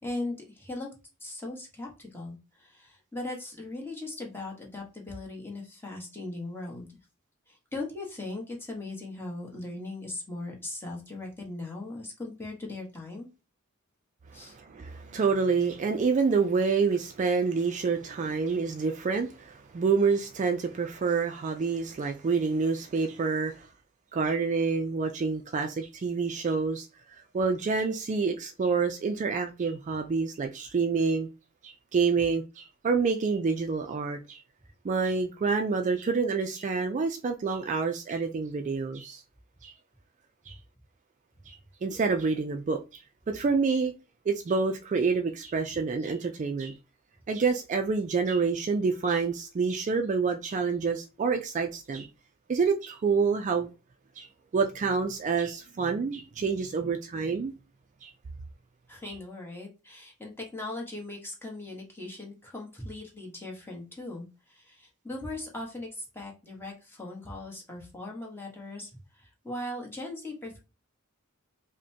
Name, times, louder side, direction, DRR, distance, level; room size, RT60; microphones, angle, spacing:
voice 1, 0.0-0.9 1.2-6.9 7.5-13.3 14.3-14.6 58.9-68.9 69.2-70.6, left 2 dB, 10° left, 1.1 m, -39 dB
voice 2, 14.3-23.7 24.1-26.9 27.3-31.3 31.6-34.4 34.8-39.2 39.6-39.7 40.5-40.6 41.5-43.9 44.3-46.7 47.3-52.1 52.5-53.7 54.2-54.3 54.5-57.5 58.0-58.1 59.1-59.2, right 5 dB, 35° right, 0.3 m, -28 dB
5.1 x 2.1 x 2.7 m
head